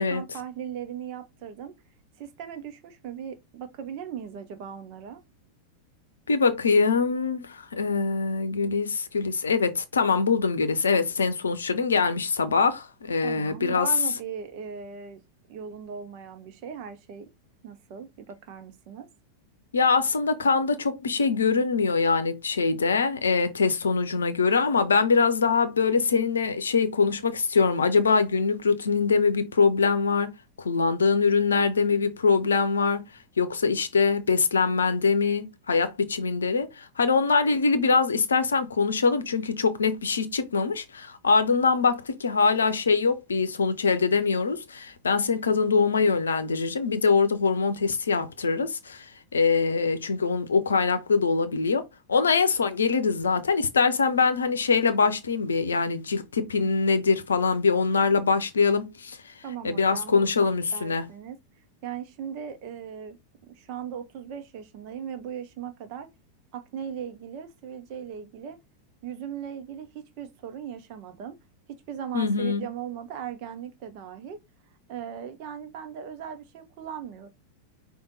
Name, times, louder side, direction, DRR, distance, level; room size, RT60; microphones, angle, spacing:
voice 1, 0.0-1.8 2.2-5.2 13.2-15.2 15.5-17.3 17.6-19.1 59.4-60.3 60.7-61.4 61.8-63.2 63.5-66.1 66.5-68.6 69.0-71.4 71.7-74.4 74.9-77.3, right 8 dB, 45° right, 0.9 m, -38 dB
voice 2, 6.3-13.9 19.7-30.3 30.6-33.0 33.4-59.3 59.6-61.1 72.1-72.6, left 4 dB, 70° left, 0.6 m, -23 dB
5.2 x 2.5 x 3.9 m
figure-of-eight pair, 90°, 0 cm